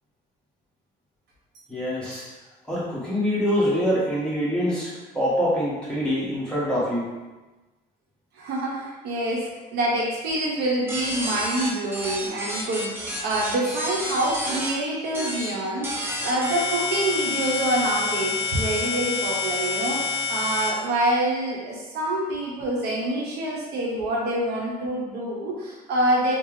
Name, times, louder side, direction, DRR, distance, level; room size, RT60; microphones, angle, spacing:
voice 1, 1.7-2.3 2.7-7.1, equal, 5° left, -9 dB, 1.5 m, -25 dB
voice 2, 8.4-26.4, right 1 dB, 80° right, -4 dB, 1.2 m, -26 dB
sound 1, 10.9-14.7 15.1-15.5 15.8-20.7, left 3 dB, 15° right, 0.9 m, -29 dB
4.4 x 2.4 x 3.4 m, 1.2 s
cardioid pair, 110°, 17 cm